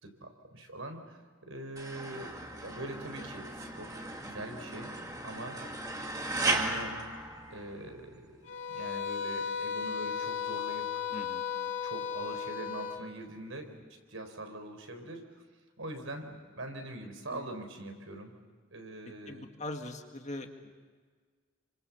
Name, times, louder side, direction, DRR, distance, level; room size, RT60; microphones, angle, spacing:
voice 1, 0.0-2.4 2.6-4.9 5.2-5.6 6.4-7.0 7.5-11.0 11.8-15.4 15.8-18.3 18.7-19.5, right 1 dB, 75° right, 5 dB, 4.2 m, -43 dB
sound 1, 1.8-8.0, right 2 dB, 15° right, 2.4 m, -36 dB
sound 2, 8.4-13.0, left 7 dB, 55° left, 4.1 m, -35 dB
voice 2, 11.1-11.8 17.3-17.5 19.3-20.7, left 1 dB, 35° left, 4 dB, 2.0 m, -42 dB
29.0 x 25.5 x 7.2 m, 1.5 s
head